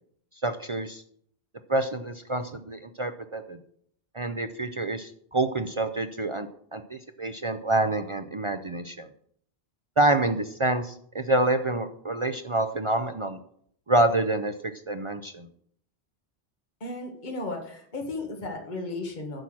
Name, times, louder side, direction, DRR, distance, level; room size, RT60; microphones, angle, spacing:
voice 1, 0.4-1.0 1.7-3.6 4.1-9.1 10.0-13.4 13.9-14.5 14.9-15.5, right 2 dB, 40° right, 8 dB, 0.5 m, -27 dB
voice 2, 16.8-19.4, left 2 dB, 45° left, 2 dB, 1.7 m, -34 dB
9.9 x 5.9 x 6.2 m, 0.64 s
omnidirectional pair, 1.1 m